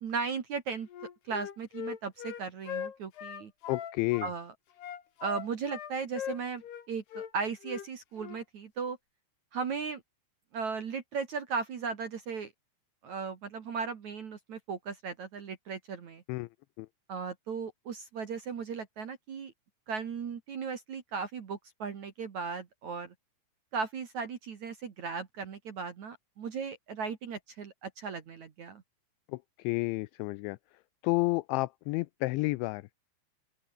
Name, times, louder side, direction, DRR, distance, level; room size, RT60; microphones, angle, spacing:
voice 1, 0.0-0.9 1.3-3.5 4.2-4.5 5.2-9.0 9.5-10.0 10.5-12.5 13.0-16.2 17.1-19.5 19.9-23.1 23.7-28.8, right 5 dB, 50° right, 2.3 m, -36 dB
Wind instrument woodwind instrument, 0.9-4.4 4.8-6.9 7.1-7.3 7.6-7.9 8.2-8.4, left 9 dB, 55° left, 4.3 m, -40 dB
voice 2, 3.7-4.3 16.3-16.5 16.8-16.9 29.3-30.6 31.0-32.9, left 22 dB, 90° left, 2.6 m, -31 dB
open air
omnidirectional pair, 5.9 m